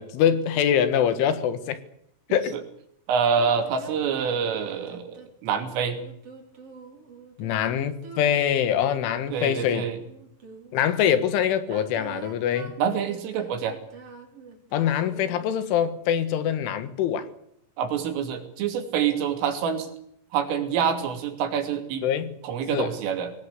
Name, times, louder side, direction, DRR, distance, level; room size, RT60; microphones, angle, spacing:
voice 1, 0.0-1.8 2.3-2.6 7.4-9.9 10.7-12.7 14.7-17.3 22.0-22.4 22.7-22.9, left 9 dB, 75° left, 3.8 m, -24 dB
voice 2, 3.1-6.0 9.3-10.0 12.8-13.8 17.8-19.9 20.3-22.1 22.4-23.3, right 7 dB, 75° right, 5.4 m, -26 dB
sound 1, 3.4-10.9 11.6-15.6, right 4 dB, 30° right, 4.5 m, -45 dB
23.5 x 19.0 x 8.2 m
omnidirectional pair, 5.8 m